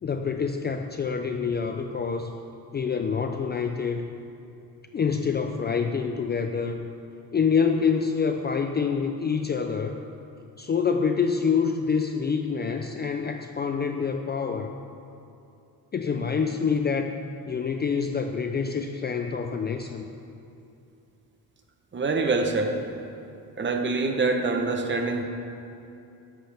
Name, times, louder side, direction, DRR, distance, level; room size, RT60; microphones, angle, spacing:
voice 1, 0.0-2.3 2.7-4.1 4.9-6.8 7.3-10.0 10.6-14.8 15.9-17.1 17.5-20.1, left 6 dB, 30° left, 5 dB, 0.4 m, -26 dB
voice 2, 21.9-22.8 23.6-25.2, right 3 dB, 30° right, 5 dB, 0.9 m, -25 dB
13.5 x 10.0 x 3.4 m, 2.7 s
cardioid pair, 155°, 38 cm